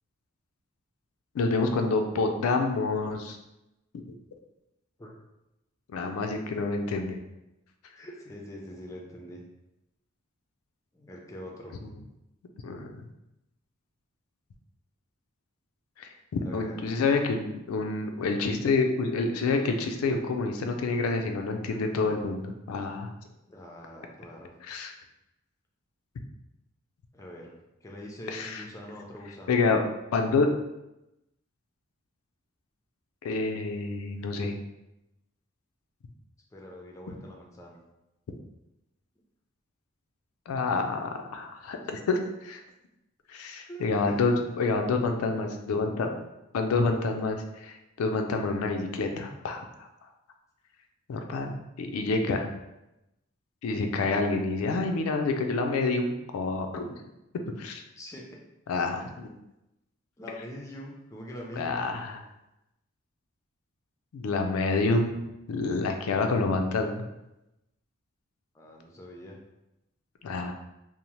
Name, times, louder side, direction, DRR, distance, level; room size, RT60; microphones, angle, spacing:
voice 1, 1.3-3.4 5.9-7.2 11.8-11.9 12.6-13.0 16.0-23.1 24.7-24.9 28.3-28.6 29.5-29.8 30.1-30.5 33.2-34.5 40.5-42.6 43.3-46.2 46.5-49.9 51.1-51.5 51.8-52.5 53.6-56.9 57.6-57.8 58.7-59.3 61.6-62.2 64.1-65.2 65.5-67.1 70.2-70.5, left 3 dB, 90° left, 5 dB, 0.3 m, -28 dB
voice 2, 8.0-9.4 10.9-11.7 16.4-16.7 23.5-24.5 27.1-27.5 27.8-29.7 36.5-37.8 43.7-44.3 58.0-58.4 60.2-61.9 68.5-69.4, equal, 15° left, -1 dB, 0.3 m, -43 dB
2.6 x 2.0 x 3.0 m, 0.92 s
head